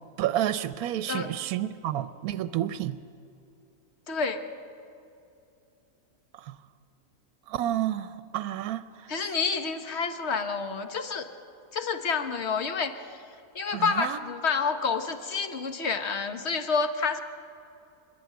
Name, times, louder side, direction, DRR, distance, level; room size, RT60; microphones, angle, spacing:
voice 1, 0.2-3.0 6.3-6.6 7.5-9.1 13.7-14.2, right 12 dB, 80° right, 13 dB, 1.1 m, -30 dB
voice 2, 4.1-4.5 9.1-11.3 11.7-13.2 13.5-17.2, left 5 dB, 50° left, 8 dB, 1.4 m, -29 dB
26.5 x 11.5 x 9.3 m, 2.6 s
omnidirectional pair, 1.5 m